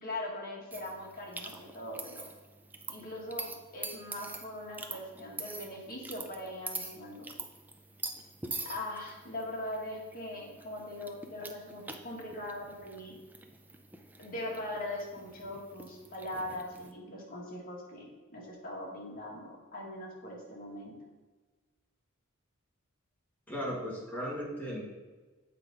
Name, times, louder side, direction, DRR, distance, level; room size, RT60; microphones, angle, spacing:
voice 1, 0.0-2.2 2.9-7.3 8.6-13.2 14.2-20.9, left 1 dB, 45° left, -3 dB, 2.0 m, -41 dB
sound 1, 0.7-16.9, right 3 dB, 10° right, 0.5 m, -45 dB
voice 2, 23.5-24.8, equal, 10° left, -5 dB, 1.9 m, -36 dB
8.0 x 5.1 x 4.1 m, 1.3 s
head